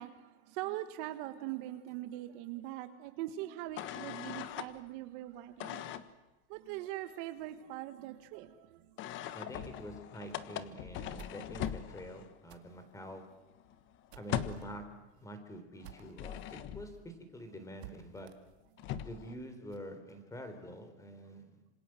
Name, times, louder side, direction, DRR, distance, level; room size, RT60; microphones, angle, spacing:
voice 1, 0.0-5.9 6.5-8.9, right 14 dB, 50° right, 1.6 m, -42 dB
sound 1, 3.8-4.7 5.6-6.1 9.0-12.4 12.7-12.8 13.1-14.8 15.8-17.0 18.5-18.6 18.8-19.3, left 11 dB, 35° left, 1.4 m, -40 dB
voice 2, 9.3-13.2 14.1-14.8 15.1-18.3 19.0-21.6, equal, 10° left, 3.9 m, -47 dB
sound 2, 10.9-16.6 16.9-17.0 17.3-17.4 17.8-19.9, right 14 dB, 65° right, 2.4 m, -57 dB
27.0 x 26.5 x 7.8 m
supercardioid pair, 150°, 35 cm